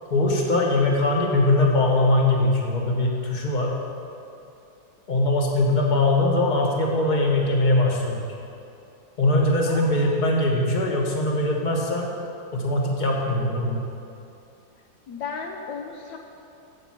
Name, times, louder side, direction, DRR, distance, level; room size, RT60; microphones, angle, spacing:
voice 1, 0.1-3.7 5.1-8.3 9.2-12.1 12.5-13.8, left 2 dB, 25° left, -1 dB, 1.4 m, -21 dB
voice 2, 9.7-10.3 15.1-16.2, left 5 dB, 70° left, 2 dB, 1.3 m, -35 dB
8.5 x 7.5 x 7.6 m, 2.7 s
omnidirectional pair, 2.0 m